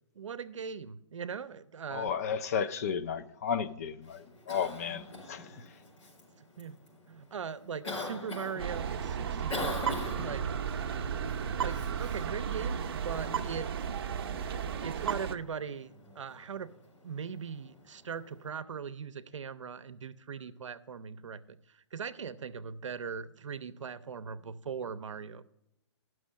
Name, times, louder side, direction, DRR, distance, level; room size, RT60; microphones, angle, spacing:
voice 1, 0.2-2.1 5.1-5.2 6.6-6.8 7.1-9.9 10.2-10.5 11.4-13.7 14.8-16.7 17.0-21.6 21.9-25.4, right 6 dB, 90° right, 0.6 m, -40 dB
voice 2, 1.9-5.6, left 7 dB, 30° left, 0.4 m, -33 dB
Cough, 4.0-18.5, left 2 dB, 85° left, 4.4 m, -45 dB
sound 1, 8.6-15.4, right 7 dB, 50° right, 0.7 m, -34 dB
10.0 x 6.2 x 6.2 m
hypercardioid pair, 160°, 15 cm